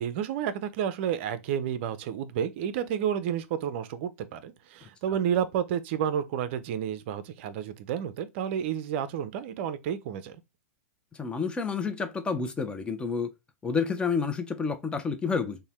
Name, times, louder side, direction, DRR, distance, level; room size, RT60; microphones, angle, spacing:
voice 1, 0.0-10.4, right 9 dB, 50° right, 0.4 m, -30 dB
voice 2, 11.2-13.3 13.6-15.6, left 5 dB, 10° left, 0.5 m, -29 dB
2.6 x 2.1 x 3.1 m
figure-of-eight pair, 105°, 8 cm